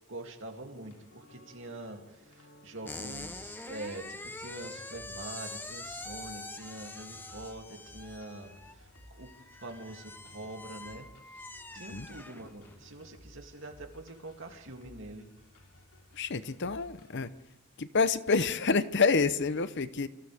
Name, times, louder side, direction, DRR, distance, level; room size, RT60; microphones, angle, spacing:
voice 1, 0.1-9.3 9.6-15.3, right 2 dB, 55° right, 3 dB, 2.8 m, -45 dB
sound 1, 0.8-17.4, left 1 dB, 80° left, 3.9 m, -57 dB
sound 2, 2.8-12.8, left 2 dB, 10° left, 0.8 m, -45 dB
voice 2, 16.1-17.3 17.8-20.1, left 4 dB, 50° left, 14 dB, 0.8 m, -28 dB
28.5 x 27.5 x 3.6 m, 0.99 s
head